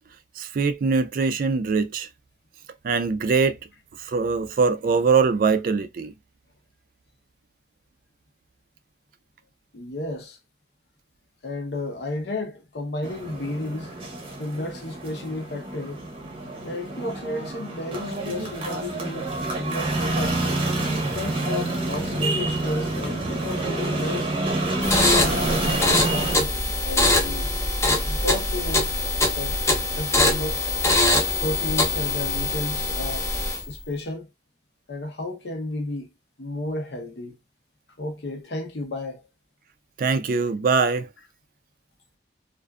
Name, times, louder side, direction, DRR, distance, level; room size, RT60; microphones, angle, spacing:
voice 1, 0.4-2.1 2.8-3.6 4.0-6.1 40.0-41.1, right 4 dB, 50° right, 0.3 m, -22 dB
voice 2, 9.7-10.4 11.4-13.9 14.4-16.0 16.6-19.3 19.5-20.4 21.1-24.3 25.2-26.5 26.8-27.5 28.0-28.9 29.3-29.5 29.9-30.7 31.4-33.3 33.7-34.3 34.9-36.1 36.4-37.3 38.0-39.2, left 2 dB, 70° left, 0.7 m, -32 dB
sound 1, 13.0-26.4, right 2 dB, 30° right, 0.7 m, -28 dB
sound 2, 24.8-33.8, left 2 dB, 15° left, 0.5 m, -23 dB
2.5 x 2.4 x 2.2 m
head